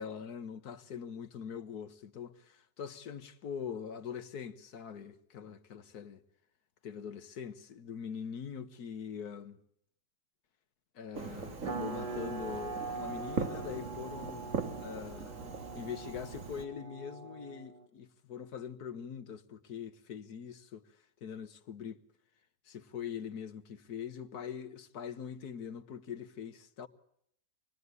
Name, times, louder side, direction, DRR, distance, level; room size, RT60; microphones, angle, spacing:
voice 1, 0.0-6.2 6.8-9.6 10.9-14.5 14.8-15.4 15.7-20.9 21.2-22.0 22.6-26.9, left 7 dB, 70° left, 1.8 m, -43 dB
Fireworks, 11.1-16.6, right 5 dB, 50° right, 2.0 m, -40 dB
sound 1, 11.7-17.9, right 4 dB, 75° right, 3.7 m, -42 dB
27.5 x 19.5 x 9.6 m
omnidirectional pair, 1.7 m